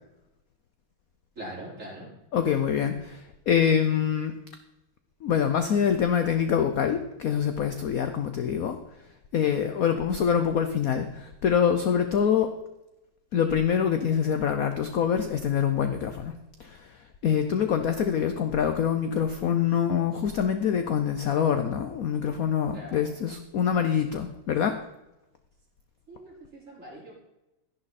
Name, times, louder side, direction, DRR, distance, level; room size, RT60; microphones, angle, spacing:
voice 1, 1.3-2.1 22.7-23.1 26.1-27.2, right 1 dB, 35° right, -5 dB, 5.1 m, -42 dB
voice 2, 2.3-4.3 5.2-8.8 9.3-12.5 13.3-16.3 16.6-24.8, left 8 dB, 60° left, 8 dB, 0.9 m, -25 dB
12.0 x 11.0 x 4.1 m, 0.94 s
omnidirectional pair, 2.3 m